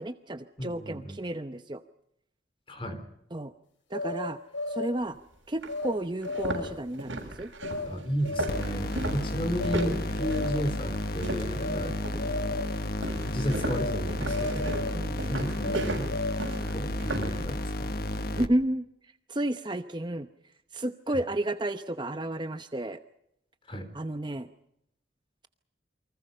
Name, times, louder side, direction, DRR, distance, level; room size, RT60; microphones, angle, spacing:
voice 1, 0.0-1.8 3.3-3.5 3.9-4.4 4.7-5.2 5.5-7.5 11.7-11.9 14.9-15.2 18.4-18.9 19.3-20.3 20.7-23.0 23.9-24.5, right 1 dB, 25° right, 9 dB, 0.8 m, -32 dB
voice 2, 0.6-1.2 2.7-3.1 7.9-12.0 13.3-15.0 15.3-16.2 16.7-17.9 21.1-21.2 23.7-23.9, equal, 25° left, 8 dB, 3.9 m, -33 dB
sound 1, 3.9-5.0 5.7-5.9 6.2-6.8 7.6-7.9 8.2-8.8 9.6-9.9 10.2-10.8 11.6-11.9 12.2-12.8 13.7-14.0 14.2-15.1 15.6-16.6, left 2 dB, 80° left, 4.7 m, -34 dB
sound 2, 5.0-5.1 5.6-5.7 6.2-11.7 12.0-12.4 13.0-17.4, right 1 dB, 80° right, 7.6 m, -35 dB
sound 3, 8.5-18.5, left 1 dB, 50° left, 1.3 m, -32 dB
29.0 x 24.0 x 5.6 m, 0.78 s
head